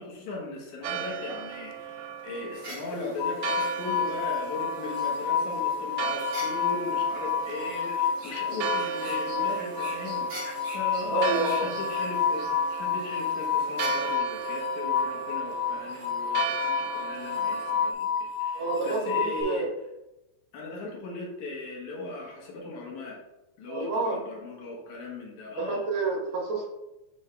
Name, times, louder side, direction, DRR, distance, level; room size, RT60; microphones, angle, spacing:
voice 1, 0.0-19.7 20.5-23.2 23.6-25.9, left 3 dB, 75° left, -2 dB, 2.7 m, -38 dB
Church bell, 0.8-17.9, right 10 dB, 80° right, 1.7 m, -37 dB
sound 1, 2.5-14.2, right 1 dB, 35° right, 2.1 m, -45 dB
sound 2, 3.2-19.4, left 7 dB, 40° left, 1.9 m, -30 dB
voice 2, 11.1-11.7 18.5-19.7 23.7-24.2 25.6-26.7, right 3 dB, 60° right, -1 dB, 1.5 m, -29 dB
8.5 x 3.6 x 3.3 m, 0.96 s
omnidirectional pair, 3.4 m